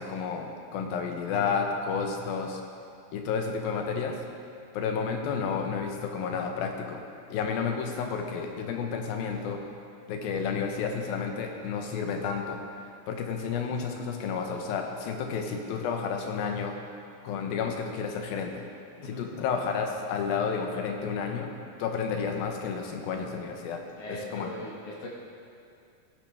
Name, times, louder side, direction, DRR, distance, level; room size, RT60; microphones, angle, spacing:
voice 1, 0.0-2.6 3.1-4.1 4.7-7.0 7.3-9.6 10.1-12.6 13.1-16.7 17.2-18.6 19.0-21.5 21.8-23.8 24.1-24.5, left 6 dB, 90° left, 3 dB, 2.9 m, -31 dB
voice 2, 24.0-25.1, left 1 dB, 60° left, -4 dB, 3.0 m, -39 dB
16.5 x 10.5 x 3.5 m, 2.4 s
omnidirectional pair, 4.1 m